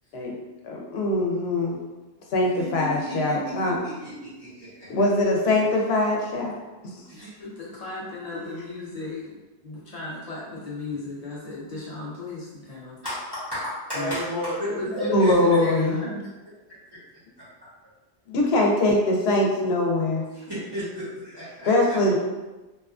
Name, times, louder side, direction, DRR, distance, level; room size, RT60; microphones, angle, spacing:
voice 1, 0.6-1.8 2.3-3.8 4.9-6.6 8.3-8.7 15.1-16.0 18.3-20.2 21.7-22.2, left 1 dB, 80° left, -1 dB, 0.8 m, -22 dB
voice 2, 2.6-4.9 7.1-7.3 13.0-15.6 20.3-22.0, equal, 25° right, -11 dB, 0.8 m, -32 dB
voice 3, 7.4-13.0 13.9-14.2 14.7-16.3, left 3 dB, 50° left, -6 dB, 0.5 m, -34 dB
2.7 x 2.3 x 2.4 m, 1.1 s
omnidirectional pair, 1.0 m